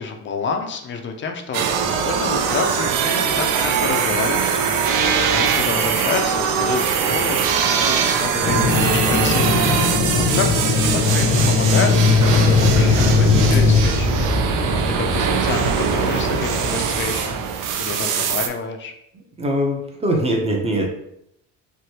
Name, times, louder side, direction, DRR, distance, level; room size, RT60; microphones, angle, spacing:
voice 1, 0.0-10.5 10.8-14.3 14.7-18.9, left 5 dB, 35° left, 5 dB, 0.4 m, -29 dB
sound 1, 1.5-18.5, right 7 dB, 65° right, 0.4 m, -22 dB
sound 2, 8.4-13.8, left 4 dB, 75° left, 0.7 m, -18 dB
sound 3, 12.2-17.5, right 1 dB, 90° right, 0.9 m, -24 dB
voice 2, 19.4-20.9, equal, 20° right, 1 dB, 0.6 m, -21 dB
3.2 x 2.1 x 2.8 m, 0.77 s
cardioid pair, 110°, 35 cm